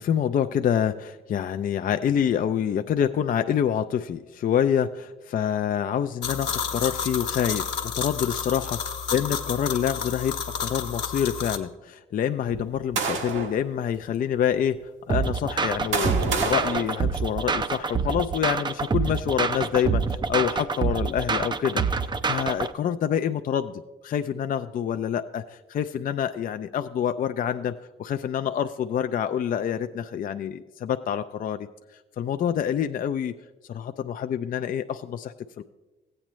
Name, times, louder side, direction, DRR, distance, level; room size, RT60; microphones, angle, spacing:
voice 1, 0.0-7.7 8.0-8.8 9.1-10.3 10.6-14.8 15.1-21.9 22.3-31.7 32.2-33.3 33.7-35.6, left 9 dB, 45° left, 8 dB, 0.4 m, -27 dB
sound 1, 6.2-11.6, left 7 dB, 60° left, 1.0 m, -31 dB
sound 2, 12.5-13.6 14.4-14.5 15.4-17.7, right 5 dB, 75° right, 1.2 m, -30 dB
sound 3, 15.1-22.7, right 5 dB, 20° right, 0.4 m, -26 dB
15.0 x 8.7 x 3.1 m, 1.1 s
cardioid pair, 90°, 20 cm